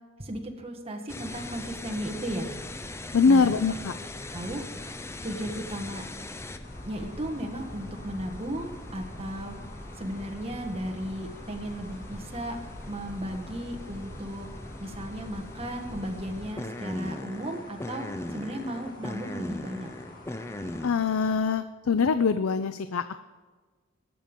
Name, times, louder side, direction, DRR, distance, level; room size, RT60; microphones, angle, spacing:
voice 1, 0.2-2.5 3.3-3.5 4.0-4.7 5.2-6.0 6.8-9.5 10.0-12.6 12.9-14.5 14.8-19.9, equal, 30° right, 2 dB, 1.5 m, -35 dB
sound 1, 1.1-20.9, left 1 dB, 15° left, 0.5 m, -40 dB
voice 2, 3.1-3.9 20.8-23.0, left 5 dB, 80° left, 11 dB, 0.5 m, -23 dB
sound 2, 6.6-21.4, left 1 dB, 45° left, 2.1 m, -49 dB
19.5 x 7.7 x 5.2 m, 1.4 s
head